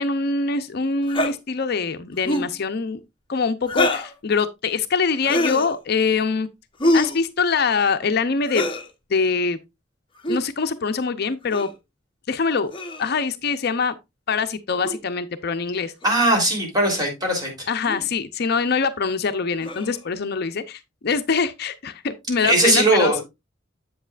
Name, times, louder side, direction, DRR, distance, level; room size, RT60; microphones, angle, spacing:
voice 1, 0.0-3.0 3.3-6.5 6.9-8.6 9.1-9.6 10.3-11.7 12.3-12.7 13.0-13.9 14.3-15.9 17.7-23.2, left 5 dB, 55° left, 0.6 m, -24 dB
sound 1, 1.1-1.3 2.2-2.5 3.7-4.1 5.2-5.7 6.8-7.2 8.5-8.9 10.2-10.4 11.5-11.7 12.7-13.2 14.8-15.0 16.0-16.1 16.8-17.1 17.9-18.0 19.6-20.0, left 1 dB, 25° left, 1.0 m, -24 dB
voice 2, 16.0-17.7 22.4-23.2, right 1 dB, 20° right, 3.4 m, -19 dB
8.0 x 7.8 x 2.4 m
head